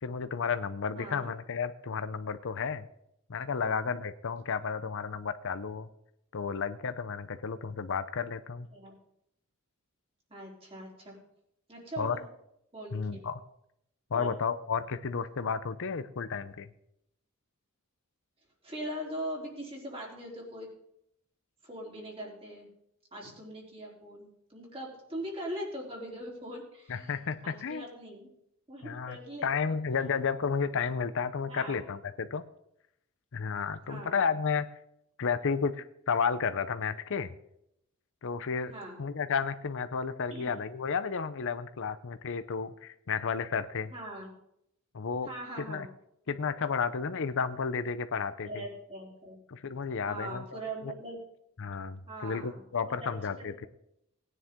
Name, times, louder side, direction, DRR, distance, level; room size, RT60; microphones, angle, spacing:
voice 1, 0.0-2.8 3.3-5.9 6.3-8.7 12.0-12.2 12.9-13.3 14.1-16.7 26.9-27.8 28.8-32.4 33.3-34.7 35.2-37.4 38.2-38.7 39.0-43.9 44.9-45.3 45.6-45.9 46.3-48.6 49.5-50.4 50.8-50.9 51.6-53.7, left 5 dB, 60° left, 11 dB, 0.7 m, -32 dB
voice 2, 1.0-1.3 3.6-3.8 8.7-9.0 10.3-11.2 11.7-12.2 12.7-13.2 14.1-14.3 18.6-20.7 21.6-22.7 23.1-27.2 27.4-28.3 28.7-29.8 31.5-31.8 33.9-34.2 38.7-39.0 40.3-40.5 43.9-44.3 45.2-45.9 48.4-49.4 50.1-51.2 52.1-53.1 53.4-53.7, right 1 dB, 25° right, -2 dB, 3.5 m, -41 dB
18.5 x 10.0 x 3.7 m, 0.77 s
head